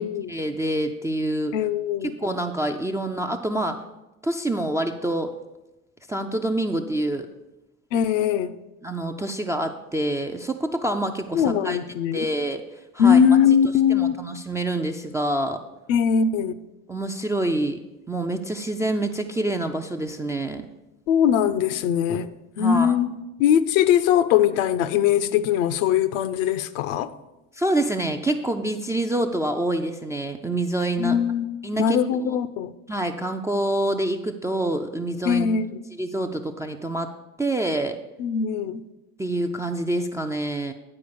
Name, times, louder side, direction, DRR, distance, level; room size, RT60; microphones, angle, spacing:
voice 1, 0.3-1.6 2.0-3.8 4.2-5.3 6.1-7.3 8.8-11.8 12.1-12.6 12.9-13.2 13.9-15.6 16.9-17.8 18.1-20.6 22.6-22.9 27.6-31.2 31.6-32.0 32.3-32.4 32.9-35.5 36.0-37.1 37.4-38.0 39.2-40.7, right 1 dB, 10° right, 0.3 m, -26 dB
voice 2, 1.5-2.1 7.9-8.6 11.3-12.2 13.0-14.2 15.9-16.5 21.1-22.3 22.6-23.1 23.4-27.1 31.0-31.5 31.8-32.7 35.3-35.8 38.2-38.8, left 8 dB, 65° left, 0.6 m, -21 dB
9.5 x 4.8 x 6.8 m
hypercardioid pair, 70°, 43 cm